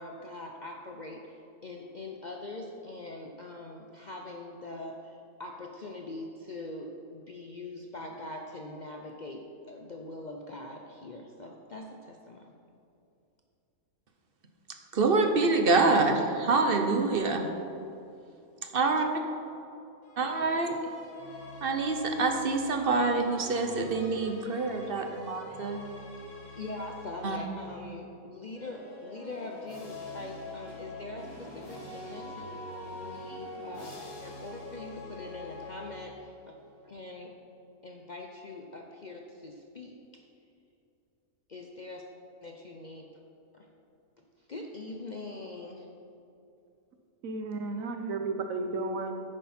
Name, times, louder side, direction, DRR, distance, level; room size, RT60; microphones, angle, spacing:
voice 1, 0.0-12.5 26.6-32.6 33.0-36.6 36.8-37.3 37.8-40.2 41.5-42.0 42.4-43.1 43.5-43.7 44.5-45.9, left 2 dB, 45° left, 1 dB, 0.6 m, -42 dB
voice 2, 14.9-17.5 18.7-19.0 20.2-20.7 21.6-25.9 27.2-27.4, right 3 dB, 50° right, 4 dB, 0.8 m, -26 dB
sound 1, 20.0-27.9 28.5-36.4, left 2 dB, 80° left, 2.5 m, -44 dB
voice 3, 47.2-49.1, right 3 dB, 70° right, 6 dB, 1.2 m, -33 dB
10.0 x 9.7 x 4.3 m, 2.7 s
omnidirectional pair, 1.5 m